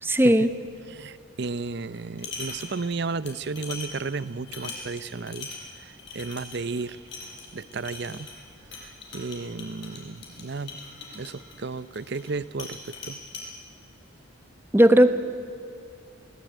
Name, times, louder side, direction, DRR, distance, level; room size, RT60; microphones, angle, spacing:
voice 1, 0.0-0.5 14.7-15.2, right 1 dB, 10° right, 10 dB, 0.9 m, -17 dB
voice 2, 0.9-5.5 5.8-7.0 7.5-8.3 8.8-10.8 11.1-13.2, right 4 dB, 50° right, 17 dB, 0.6 m, -33 dB
sound 1, 1.9-3.0 3.3-12.3 12.6-13.5, left 4 dB, 55° left, 5.5 m, -41 dB
22.0 x 18.5 x 9.1 m, 2.5 s
head